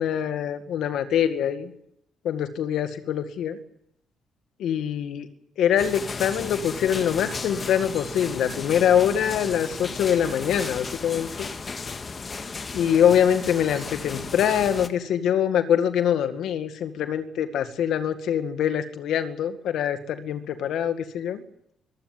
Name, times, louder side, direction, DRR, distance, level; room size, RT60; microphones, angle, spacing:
voice 1, 0.0-1.7 2.2-3.6 4.6-5.3 5.6-11.5 12.7-21.4, left 9 dB, 75° left, 10 dB, 1.9 m, -24 dB
sound 1, 5.8-14.9, left 4 dB, 35° left, 1.8 m, -35 dB
22.5 x 15.5 x 9.3 m, 0.77 s
cardioid pair, 90°, 0 cm